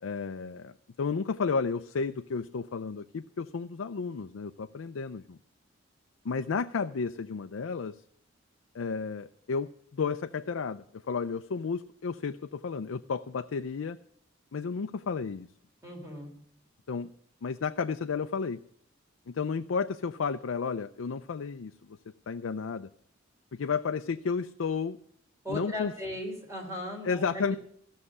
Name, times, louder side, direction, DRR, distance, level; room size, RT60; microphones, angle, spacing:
voice 1, 0.0-5.4 6.2-8.0 8.7-14.0 14.5-15.5 16.9-17.1 17.4-18.6 19.3-22.0 22.3-22.9 23.5-25.0 25.5-25.9 27.0-27.6, left 5 dB, 85° left, 8 dB, 0.5 m, -32 dB
voice 2, 15.8-16.3 25.4-27.6, left 1 dB, 15° right, 1 dB, 3.2 m, -37 dB
14.5 x 6.5 x 9.7 m, 0.67 s
head